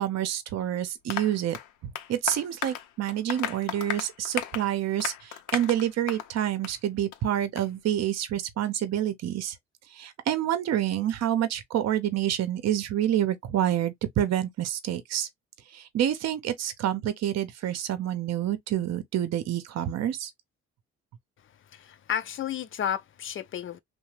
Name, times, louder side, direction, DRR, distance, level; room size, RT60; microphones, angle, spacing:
voice 1, 0.0-1.6 2.1-9.6 9.9-15.3 15.7-20.3, right 11 dB, 60° right, 0.6 m, -28 dB
Applause, 1.1-6.3 6.6-6.8 7.1-7.2 7.6-7.7, left 11 dB, 90° left, 0.6 m, -35 dB
voice 2, 21.7-23.8, left 9 dB, 45° left, 0.5 m, -32 dB
2.9 x 2.1 x 3.2 m
cardioid pair, 90°, 30 cm